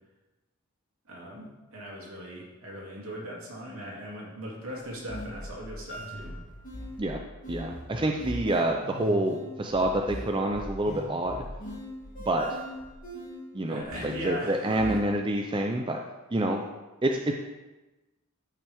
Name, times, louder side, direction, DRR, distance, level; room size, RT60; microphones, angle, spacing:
voice 1, 1.1-6.4 13.7-14.7, equal, 70° right, -3 dB, 2.7 m, -39 dB
sound 1, 4.6-15.0, equal, 35° left, 2.0 m, -40 dB
voice 2, 7.5-11.4 12.3-12.6 13.5-16.0 16.3-16.6 17.0-17.3, right 1 dB, 20° right, 2 dB, 0.5 m, -27 dB
13.5 x 5.9 x 3.5 m, 1.1 s
head